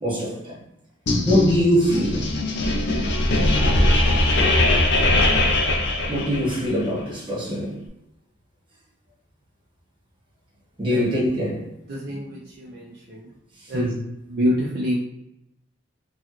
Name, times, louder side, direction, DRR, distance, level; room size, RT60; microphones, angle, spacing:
voice 1, 0.0-0.6 1.2-2.2 6.1-7.8 10.8-11.7 13.7-13.9, equal, 25° right, -6 dB, 1.3 m, -23 dB
sound 1, 1.1-6.7, left 1 dB, 60° left, 0.5 m, -20 dB
voice 2, 10.9-11.2 11.9-13.3 13.7-13.9 14.3-15.0, equal, 50° right, -5 dB, 0.5 m, -26 dB
3.1 x 2.5 x 2.9 m, 0.85 s
head